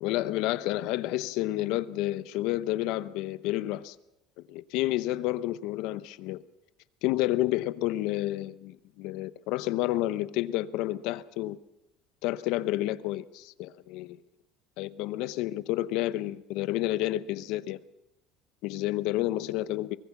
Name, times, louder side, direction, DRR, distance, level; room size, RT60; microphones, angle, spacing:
voice 1, 0.0-3.9 4.4-6.4 7.0-11.6 12.2-14.2 14.8-17.8 18.6-20.0, left 16 dB, 65° left, 0.8 m, -30 dB
23.5 x 21.0 x 6.0 m
cardioid pair, 165°, 0 cm